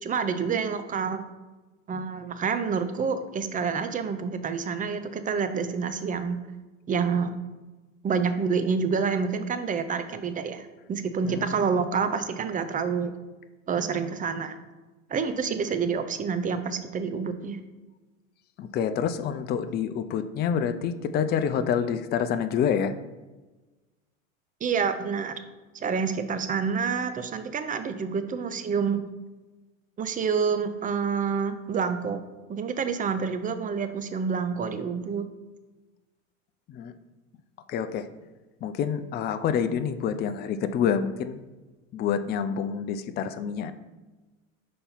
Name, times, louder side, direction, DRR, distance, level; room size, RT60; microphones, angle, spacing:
voice 1, 0.0-1.2 1.9-6.4 6.9-7.3 8.0-13.1 13.7-14.6 15.1-17.6 24.6-25.4 25.7-29.0 30.0-32.2 32.5-35.3, right 5 dB, 20° right, 10 dB, 0.6 m, -28 dB
voice 2, 11.2-11.6 18.6-22.9 36.7-36.9 37.7-38.1 38.6-41.4 41.9-43.7, left 7 dB, 25° left, 10 dB, 0.4 m, -27 dB
5.5 x 4.2 x 5.4 m, 1.2 s
hypercardioid pair, 85°, 40 cm